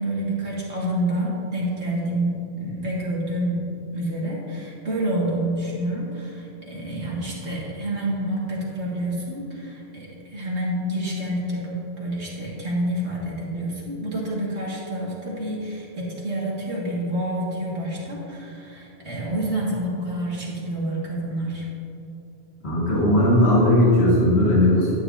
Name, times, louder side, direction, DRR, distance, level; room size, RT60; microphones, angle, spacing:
voice 1, 0.0-3.6 3.9-21.6, right 1 dB, 80° right, -5 dB, 2.4 m, -28 dB
voice 2, 22.6-24.9, left 1 dB, 70° left, -7 dB, 2.2 m, -17 dB
11.5 x 9.9 x 2.8 m, 2.9 s
omnidirectional pair, 1.1 m